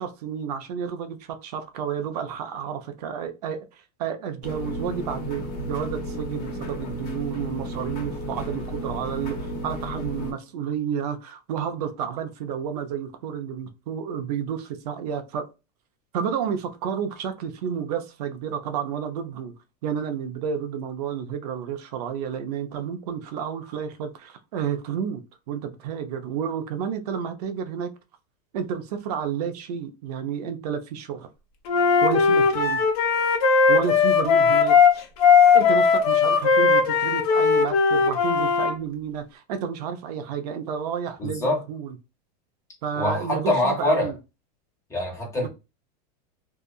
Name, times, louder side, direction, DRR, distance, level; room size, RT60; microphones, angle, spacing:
voice 1, 0.0-15.5 16.1-19.5 19.8-25.2 25.5-27.9 28.5-31.3 32.0-32.8 33.7-34.8 35.5-41.9 42.8-44.1 45.4-45.5, right 7 dB, 70° right, 0.6 m, -31 dB
sound 1, 4.4-10.3, equal, 45° left, 1.2 m, -33 dB
Wind instrument woodwind instrument, 31.7-38.7, left 5 dB, 65° left, 0.9 m, -18 dB
voice 2, 41.2-41.6 43.0-44.1 44.9-45.5, left 1 dB, 15° left, 1.2 m, -24 dB
2.7 x 2.4 x 2.3 m
supercardioid pair, 150°, 21 cm